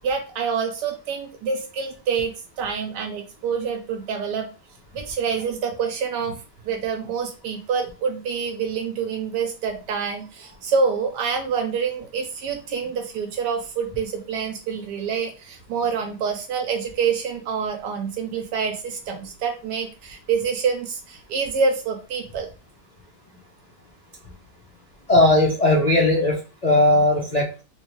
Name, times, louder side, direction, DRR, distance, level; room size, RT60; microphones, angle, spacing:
voice 1, 0.0-4.5 4.9-6.4 6.6-22.5, right 6 dB, 85° right, 3 dB, 1.3 m, -26 dB
voice 2, 25.1-27.6, left 1 dB, 40° left, -5 dB, 0.6 m, -18 dB
3.1 x 2.7 x 2.9 m, 0.32 s
omnidirectional pair, 1.8 m